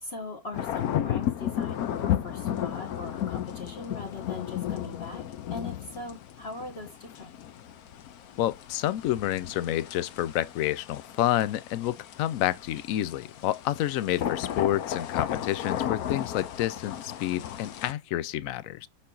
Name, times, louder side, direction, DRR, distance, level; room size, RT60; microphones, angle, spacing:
voice 1, 0.0-5.2 5.5-7.4, left 3 dB, 35° left, 1.4 m, -40 dB
sound 1, 0.5-17.9, left 11 dB, 65° left, 1.1 m, -34 dB
voice 2, 8.4-18.9, left 13 dB, 80° left, 0.7 m, -29 dB
7.3 x 4.4 x 3.8 m
omnidirectional pair, 2.0 m